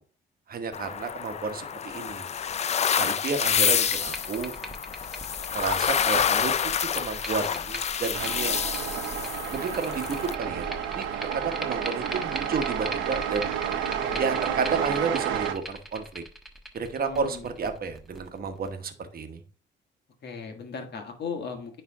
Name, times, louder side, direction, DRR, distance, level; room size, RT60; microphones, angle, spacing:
voice 1, 0.5-2.3 3.0-4.5 5.5-6.5 6.9-8.5 9.5-11.1 11.3-13.6 14.2-16.2 16.7-19.4, right 5 dB, 50° right, 7 dB, 1.1 m, -31 dB
sound 1, 0.7-10.3, left 8 dB, 35° left, 0.4 m, -28 dB
sound 2, 3.4-18.7, right 1 dB, ahead, 1.1 m, -41 dB
sound 3, 8.1-15.5, right 9 dB, 90° right, 0.8 m, -31 dB
voice 2, 14.0-14.7 17.0-17.5 20.2-21.8, left 5 dB, 55° left, 4 dB, 1.6 m, -38 dB
9.3 x 3.4 x 3.5 m, 0.42 s
cardioid pair, 90°, 20 cm